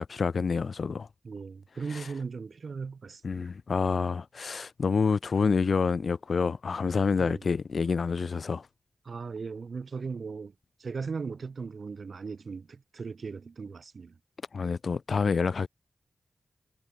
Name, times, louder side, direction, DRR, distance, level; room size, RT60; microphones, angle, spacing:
voice 1, 0.0-1.1 1.9-2.1 3.2-8.7 14.5-15.7, left 5 dB, 70° left, 2.0 m, -28 dB
voice 2, 1.2-3.3 7.2-7.4 9.1-10.5 10.8-14.1, right 5 dB, 70° right, 3.8 m, -38 dB
cardioid pair, 60°, 0 cm